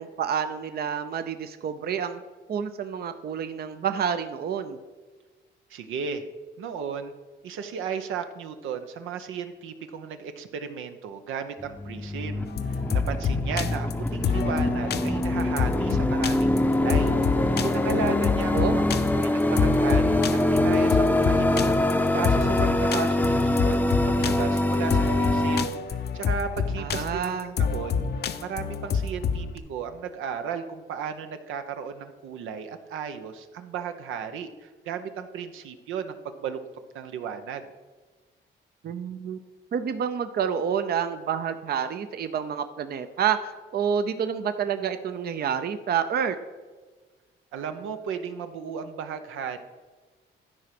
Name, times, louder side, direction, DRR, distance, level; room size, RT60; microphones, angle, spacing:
voice 1, 0.0-2.2 2.5-4.8 18.5-18.8 26.8-27.5 38.8-39.4 39.7-46.4, right 7 dB, 50° right, 10 dB, 0.6 m, -28 dB
voice 2, 5.7-6.2 6.6-7.1 7.4-18.8 19.2-20.2 20.5-28.0 28.4-36.6 36.9-37.7 47.5-49.6, right 6 dB, 85° right, 8 dB, 0.8 m, -35 dB
sound 1, 11.6-25.6, left 1 dB, 10° left, 0.7 m, -24 dB
sound 2, 12.5-29.6, left 6 dB, 55° left, 0.7 m, -28 dB
12.5 x 4.9 x 6.0 m, 1.3 s
cardioid pair, 90°, 20 cm